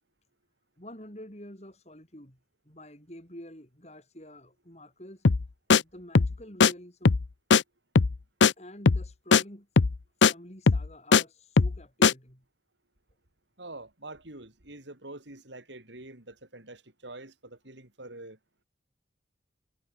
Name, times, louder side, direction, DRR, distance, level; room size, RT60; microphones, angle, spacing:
voice 1, 0.8-2.4 2.6-5.3 5.7-7.2 8.6-9.7 10.2-12.4, left 1 dB, 35° left, 6.4 m, -47 dB
sound 1, 5.2-5.4 5.7-5.8 6.1-6.3 6.6-6.7 7.0-7.3 7.5-7.6 7.9-8.2 8.4-8.5 8.9-9.1 9.3-9.4 9.8-10.0 10.2-10.3 10.7-11.2 11.6-11.8 12.0-12.1, left 5 dB, 90° left, 0.7 m, -19 dB
voice 2, 13.6-18.4, right 2 dB, 80° right, 5.0 m, -45 dB
head